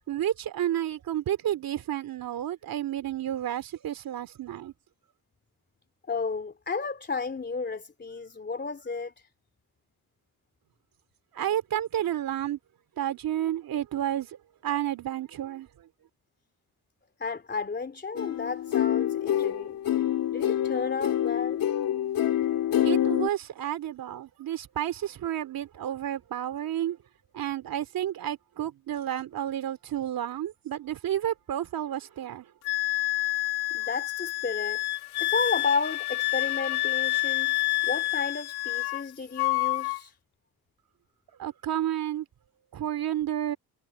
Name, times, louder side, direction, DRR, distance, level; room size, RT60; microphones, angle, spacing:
voice 1, 0.1-4.7 11.3-12.6 13.0-15.9 22.8-27.0 27.3-32.5 41.4-42.3 42.7-43.6, right 11 dB, 65° right, 2.9 m, -31 dB
voice 2, 6.1-9.3 17.2-19.8 20.3-21.7 33.3-33.4 33.7-34.8 35.2-40.1, left 4 dB, 30° left, 3.1 m, -33 dB
sound 1, 18.2-23.3, left 11 dB, 65° left, 2.6 m, -26 dB
Wind instrument woodwind instrument, 32.7-39.1 39.4-40.0, left 22 dB, 90° left, 1.2 m, -28 dB
cardioid pair, 80°, 37 cm